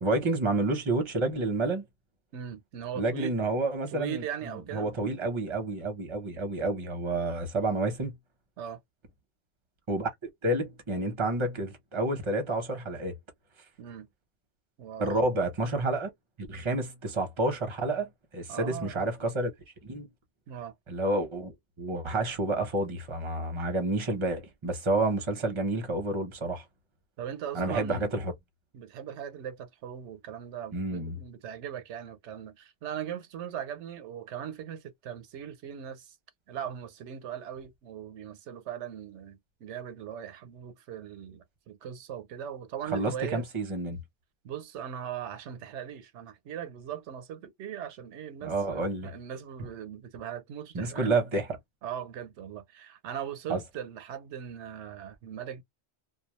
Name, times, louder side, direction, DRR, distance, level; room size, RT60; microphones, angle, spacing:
voice 1, 0.0-1.8 2.9-8.2 9.9-10.1 10.4-13.2 15.0-16.1 16.4-19.5 19.8-20.1 20.9-26.6 27.5-28.3 30.7-31.2 42.9-44.0 48.4-49.1 50.7-51.5 53.5-53.6, right 2 dB, 30° right, 0.8 m, -29 dB
voice 2, 2.3-3.3 3.9-5.0 8.6-8.8 13.8-14.1 14.8-15.3 18.5-19.1 20.5-20.7 27.2-28.1 28.7-36.2 36.5-43.5 44.4-51.1 51.8-55.6, right 9 dB, 90° right, 0.9 m, -39 dB
2.3 x 2.2 x 2.9 m
omnidirectional pair, 1.1 m